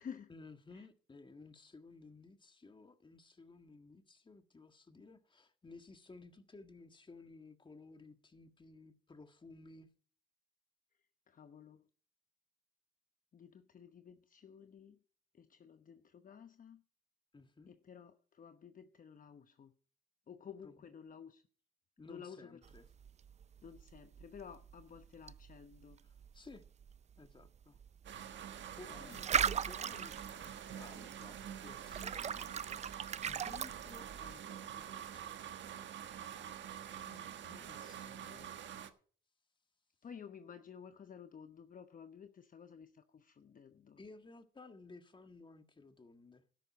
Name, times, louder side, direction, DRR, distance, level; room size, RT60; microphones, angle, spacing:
voice 1, 0.3-9.9 17.3-17.7 20.6-20.9 22.0-22.9 26.0-26.6 27.2-27.8 28.8-30.2 30.4-32.5 33.2-34.4 34.7-35.3 44.0-46.4, left 3 dB, 25° left, 1.7 m, -56 dB
voice 2, 11.3-11.9 13.3-15.0 15.3-16.8 17.7-19.7 20.3-21.4 22.1-22.6 23.6-26.0 28.9-29.2 36.8-38.6 40.0-44.0, left 7 dB, 45° left, 0.9 m, -53 dB
sound 1, 22.6-34.3, right 8 dB, 35° right, 0.4 m, -40 dB
sound 2, 28.0-38.9, right 9 dB, 70° right, 1.4 m, -47 dB
13.0 x 11.0 x 4.1 m
cardioid pair, 90°, 20 cm